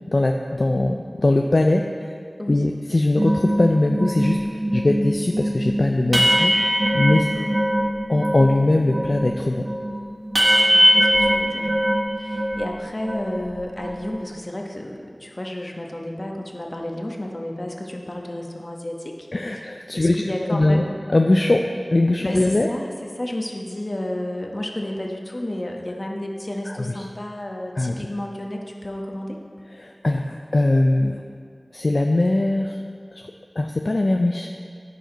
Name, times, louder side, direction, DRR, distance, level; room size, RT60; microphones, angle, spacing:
voice 1, 0.1-2.2 2.5-6.5 6.9-7.3 8.1-9.7 19.3-20.2 20.5-20.9 21.1-21.7 21.9-22.7 26.7-27.0 27.8-28.0 29.8-31.2 31.7-32.8 33.1-34.5, left 2 dB, 60° left, 2 dB, 0.4 m, -21 dB
sound 1, 3.1-8.6 8.8-12.7 13.0-14.2, equal, 45° right, 1.0 m, -21 dB
voice 2, 7.3-7.8 10.7-11.7 12.2-21.0 22.2-29.4, left 1 dB, 45° left, 1 dB, 1.1 m, -32 dB
14.5 x 5.1 x 3.9 m, 2.2 s
wide cardioid pair, 40°, 0 cm